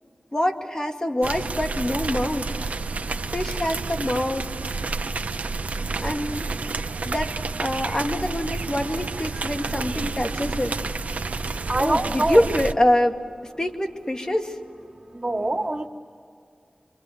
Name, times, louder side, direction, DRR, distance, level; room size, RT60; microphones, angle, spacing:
voice 1, 0.3-2.5 3.3-4.5 6.0-6.5 7.0-7.3 7.6-10.8 11.8-14.6, left 1 dB, 30° left, 4 dB, 2.2 m, -25 dB
sound 1, 1.2-12.7, right 3 dB, 90° right, 0.8 m, -30 dB
voice 2, 11.7-12.4 15.1-15.9, right 2 dB, 30° right, -3 dB, 2.7 m, -24 dB
26.5 x 25.0 x 8.0 m, 2.3 s
wide cardioid pair, 45°, 2 cm